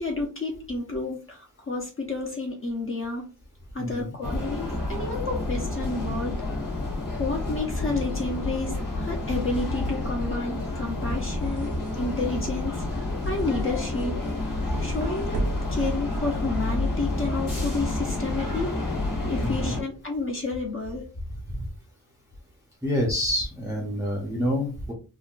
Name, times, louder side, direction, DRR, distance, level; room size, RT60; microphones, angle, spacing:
voice 1, 0.0-3.2 3.7-6.3 6.9-11.7 12.0-14.1 14.8-18.8 19.3-21.0, left 3 dB, 35° left, 0 dB, 0.6 m, -30 dB
sound 1, 4.2-19.8, left 2 dB, 60° left, 1.4 m, -29 dB
throwing garbage wing paper, 11.1-17.0, right 2 dB, 85° right, 0.8 m, -37 dB
voice 2, 19.4-19.8 21.6-21.7 22.8-24.9, equal, 10° right, -1 dB, 0.5 m, -27 dB
3.6 x 2.2 x 2.3 m, 0.35 s
wide cardioid pair, 140°, 38 cm